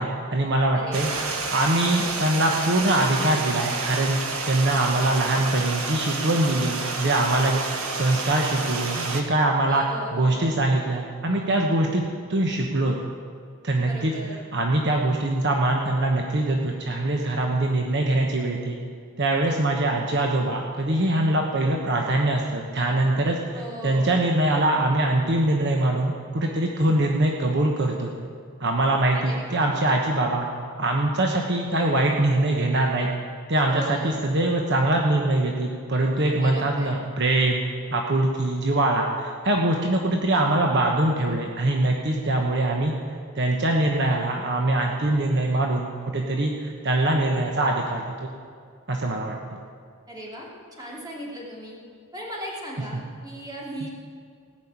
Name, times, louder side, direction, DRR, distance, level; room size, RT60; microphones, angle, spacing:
voice 1, 0.0-1.1 1.5-4.2 4.5-9.8 10.1-12.9 13.6-14.1 14.5-18.8 19.2-28.1 28.6-30.5 30.8-33.1 33.5-37.6 37.9-42.9 43.3-45.9 46.1-48.3 48.9-49.6, right 2 dB, 55° right, 1 dB, 1.1 m, -23 dB
voice 2, 0.7-1.3 9.6-10.7 13.8-14.4 23.5-24.1 29.1-29.7 33.7-34.2 36.3-37.0 50.1-50.5 50.7-51.8 52.1-53.9, right 1 dB, 20° right, -4 dB, 2.8 m, -37 dB
Stream, 0.9-9.2, right 3 dB, 75° right, 1.6 m, -30 dB
17.5 x 6.5 x 8.8 m, 2.3 s
head